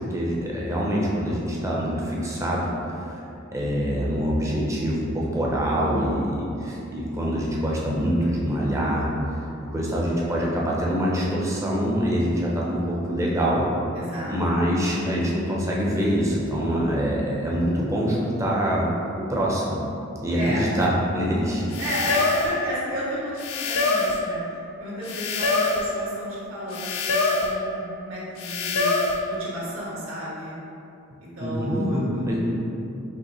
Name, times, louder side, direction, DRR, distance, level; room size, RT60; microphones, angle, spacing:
voice 1, 0.0-2.7 3.5-9.1 9.7-13.7 14.3-18.9 19.2-19.8 20.2-21.6 31.4-32.5, equal, 15° right, -4 dB, 0.6 m, -25 dB
voice 2, 5.7-6.2 13.9-14.6 20.3-20.7 21.8-28.9 29.3-30.6 31.2-32.5, equal, 80° right, -7 dB, 1.4 m, -33 dB
sound 1, 20.8-20.9 21.7-22.5 23.4-24.2 25.0-25.9 26.7-27.5 28.4-29.2, left 3 dB, 85° left, 0.5 m, -24 dB
5.5 x 3.1 x 3.0 m, 2.8 s
head